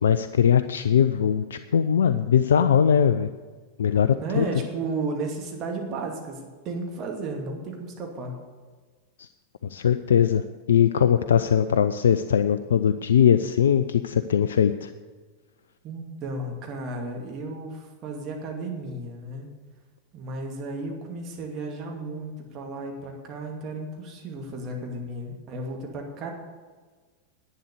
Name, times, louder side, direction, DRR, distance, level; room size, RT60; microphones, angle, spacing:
voice 1, 0.0-3.3 3.8-4.5 9.2-9.3 9.7-14.9, left 8 dB, 65° left, 11 dB, 0.4 m, -21 dB
voice 2, 4.2-8.3 15.8-19.5 20.1-26.3, right 3 dB, 35° right, 1 dB, 2.4 m, -34 dB
11.0 x 9.3 x 6.9 m, 1.4 s
figure-of-eight pair, 90°, 0 cm